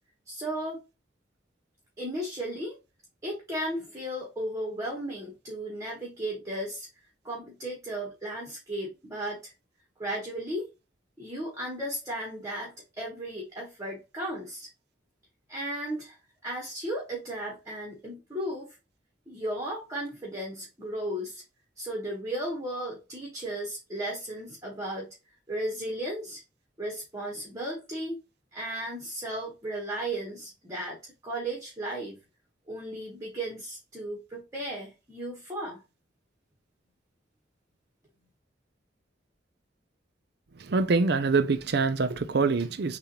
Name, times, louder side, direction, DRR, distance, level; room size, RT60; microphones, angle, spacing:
voice 1, 0.3-0.8 2.0-2.8 3.2-6.9 7.2-9.5 10.0-10.7 11.2-14.7 15.5-16.2 16.4-18.7 19.3-21.4 21.8-25.1 25.5-26.4 26.8-28.2 28.5-32.2 32.7-35.8, right 1 dB, 15° right, 1.3 m, -35 dB
voice 2, 40.7-43.0, right 4 dB, 60° right, 0.5 m, -25 dB
6.5 x 2.5 x 2.9 m
head